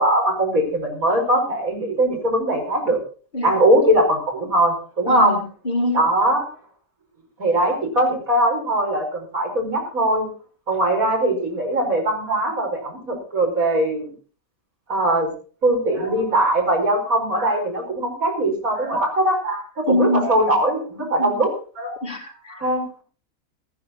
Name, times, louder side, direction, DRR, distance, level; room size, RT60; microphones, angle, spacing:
voice 1, 0.0-3.0 3.4-5.4 5.9-6.4 7.4-10.3 10.7-14.1 14.9-15.3 15.6-22.0 22.5-23.0, right 1 dB, 85° right, 1 dB, 5.4 m, -21 dB
voice 2, 5.1-6.0 19.9-20.3 21.0-21.3 22.0-22.5, left 2 dB, 35° left, 0 dB, 3.4 m, -24 dB
14.5 x 14.0 x 4.2 m, 0.38 s
omnidirectional pair, 1.4 m